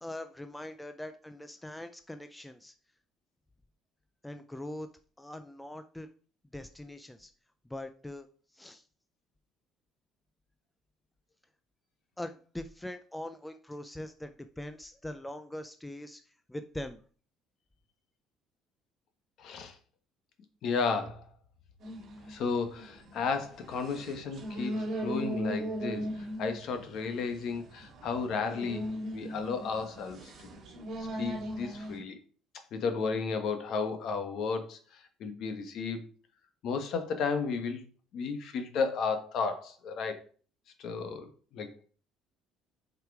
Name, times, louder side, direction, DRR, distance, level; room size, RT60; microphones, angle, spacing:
voice 1, 0.0-2.7 4.2-4.9 5.2-6.1 6.5-7.3 7.7-8.3 8.5-8.8 12.2-17.0, left 1 dB, 5° left, 0.4 m, -42 dB
voice 2, 19.4-19.8 20.6-21.3 22.3-30.3 31.2-32.2 32.7-36.0 36.6-37.8 38.1-40.2 40.8-41.7, left 5 dB, 50° left, 1.3 m, -33 dB
sound 1, 21.8-32.0, equal, 40° right, 2.6 m, -39 dB
8.1 x 4.8 x 4.7 m
cardioid pair, 165°, 0 cm